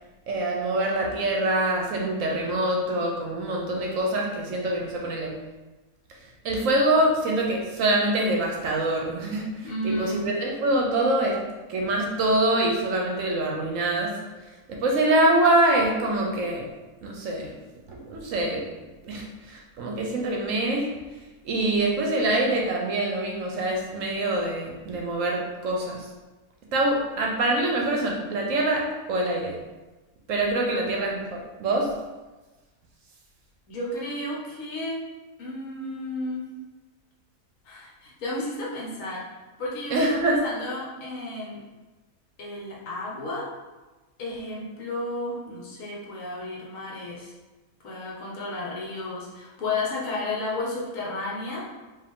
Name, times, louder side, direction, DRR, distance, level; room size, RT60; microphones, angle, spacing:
voice 1, 0.3-5.4 6.4-14.2 14.7-16.7 17.0-17.5 17.9-18.7 19.0-20.9 21.4-26.1 26.7-29.6 30.3-32.0 39.9-40.4, right 1 dB, 65° right, 0 dB, 0.9 m, -25 dB
voice 2, 9.6-10.2 30.7-30.9 33.7-35.0 35.4-36.5 37.6-39.2 39.6-41.6 42.4-43.5 44.2-47.3 47.8-51.7, left 2 dB, 65° left, -3 dB, 1.2 m, -32 dB
4.7 x 2.6 x 3.5 m, 1.2 s
omnidirectional pair, 1.6 m